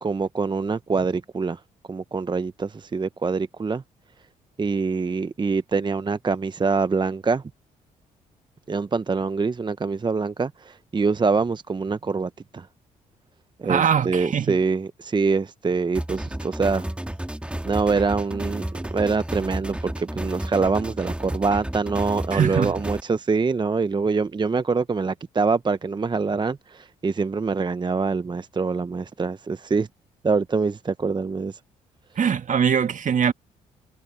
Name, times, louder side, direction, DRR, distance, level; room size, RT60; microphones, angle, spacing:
voice 1, 0.0-1.6 1.9-3.8 4.6-7.4 8.7-12.7 13.6-16.9 17.6-18.6 18.9-29.9 30.2-31.6, right 4 dB, 25° right, 0.8 m, -25 dB
voice 2, 13.6-14.6 22.3-22.8 32.2-33.3, right 7 dB, 50° right, 1.7 m, -22 dB
sound 1, 15.9-23.0, right 1 dB, 5° right, 1.7 m, -32 dB
hypercardioid pair, 50°, 17 cm